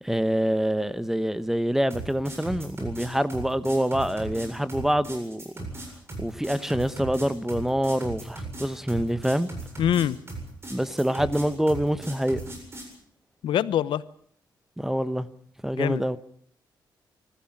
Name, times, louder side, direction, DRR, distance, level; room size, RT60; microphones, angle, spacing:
voice 1, 0.0-5.5 6.2-9.5 10.7-12.4 14.8-15.3 15.6-16.2, equal, 5° right, 1.0 m, -26 dB
sound 1, 1.9-12.9, right 2 dB, 30° right, 7.9 m, -37 dB
voice 2, 9.8-10.2 13.4-14.0 15.7-16.0, left 10 dB, 85° left, 0.9 m, -24 dB
25.5 x 14.5 x 8.9 m
cardioid pair, 125°, 8 cm